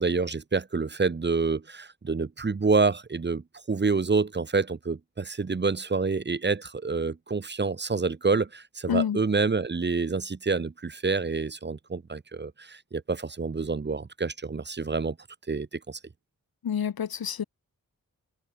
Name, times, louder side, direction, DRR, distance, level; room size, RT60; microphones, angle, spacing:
voice 1, 0.0-15.2 15.5-16.0, right 4 dB, 30° right, 0.7 m, -27 dB
voice 2, 8.9-9.2 16.6-17.4, left 8 dB, 90° left, 1.1 m, -28 dB
cardioid pair, 45°, 35 cm